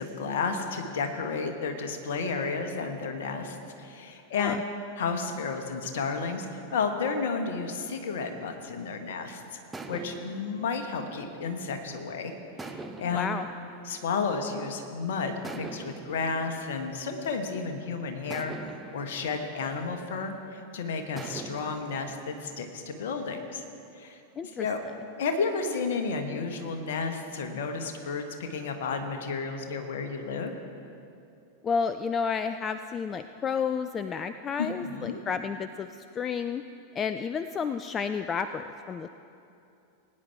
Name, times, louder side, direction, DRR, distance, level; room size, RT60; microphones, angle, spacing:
voice 1, 0.0-4.6 5.0-9.4 9.9-12.3 12.6-13.4 13.8-23.6 23.9-24.8 25.2-30.5 34.6-35.2, left 4 dB, 55° left, 5 dB, 1.2 m, -32 dB
sound 1, 8.8-9.1 9.7-12.0 12.6-14.8 15.4-17.6 18.3-20.6 21.2-22.7, right 3 dB, 10° right, 0.7 m, -44 dB
voice 2, 13.1-13.5 24.4-24.7 31.6-36.6 37.0-39.1, left 6 dB, 25° left, 10 dB, 0.3 m, -31 dB
20.0 x 9.6 x 3.4 m, 2.7 s
figure-of-eight pair, 90°, 0 cm